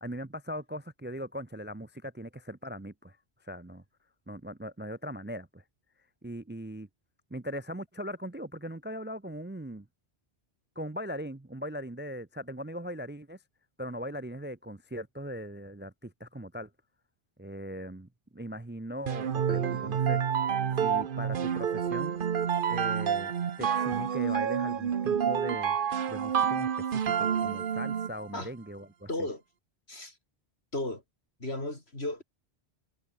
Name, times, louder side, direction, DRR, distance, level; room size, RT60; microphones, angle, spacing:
voice 1, 0.0-3.2 3.4-3.8 4.3-5.6 6.2-6.9 7.3-9.9 10.8-13.4 13.8-16.7 17.4-20.2 20.8-22.1 22.7-23.3 23.6-25.8 26.1-29.1, equal, 10° right, 0.6 m, -39 dB
sound 1, 19.1-28.2, right 8 dB, 55° right, 1.0 m, -28 dB
voice 2, 29.1-29.4 29.9-30.2 30.7-31.0 31.4-32.2, left 2 dB, 70° left, 5.8 m, -34 dB
omnidirectional pair, 1.1 m